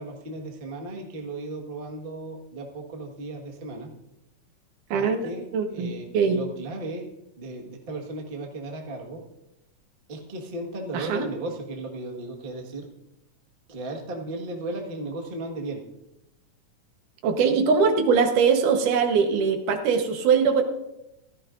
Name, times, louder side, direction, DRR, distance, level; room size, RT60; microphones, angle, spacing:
voice 1, 0.0-3.9 4.9-5.4 5.7-7.0 7.4-9.2 10.1-12.9 13.7-15.8, right 2 dB, 35° right, 1 dB, 0.9 m, -35 dB
voice 2, 4.9-6.4 10.9-11.3 17.2-20.6, right 5 dB, 80° right, 5 dB, 2.7 m, -22 dB
15.5 x 13.5 x 2.6 m, 0.89 s
omnidirectional pair, 3.6 m